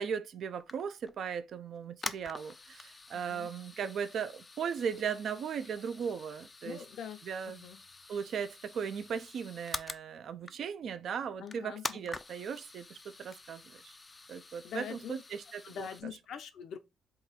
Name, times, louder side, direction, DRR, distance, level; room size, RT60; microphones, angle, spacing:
voice 1, 0.0-6.8 7.2-7.7 8.1-14.0 14.3-16.2, right 7 dB, 65° right, 0.4 m, -37 dB
sound 1, 0.6-1.2 1.8-10.0 10.5-10.8 11.1-11.2 11.5-16.0, left 3 dB, 25° left, 0.3 m, -46 dB
voice 2, 3.1-3.5 6.6-7.8 11.4-12.1 14.6-15.2 15.6-16.8, left 8 dB, 70° left, 0.5 m, -44 dB
3.8 x 2.4 x 4.1 m
cardioid pair, 90°, 0 cm